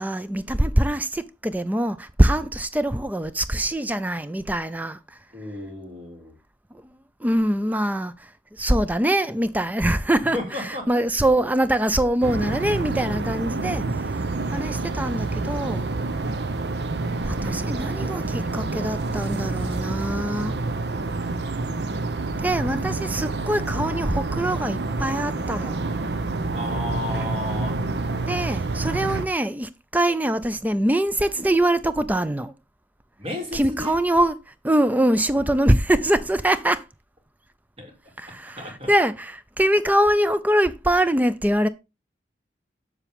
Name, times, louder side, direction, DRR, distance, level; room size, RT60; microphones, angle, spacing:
voice 1, 0.0-5.0 7.2-8.1 8.6-13.9 14.5-15.9 17.2-20.6 22.4-25.8 28.3-32.5 33.5-34.4 34.6-36.8 38.2-41.7, right 1 dB, 10° right, 0.4 m, -23 dB
voice 2, 5.3-6.3 10.3-10.9 26.5-27.8 33.2-34.0 37.8-37.9 38.6-38.9, left 1 dB, 35° right, 2.6 m, -33 dB
sound 1, 12.2-29.3, right 3 dB, 75° right, 0.7 m, -28 dB
7.3 x 6.9 x 3.5 m
head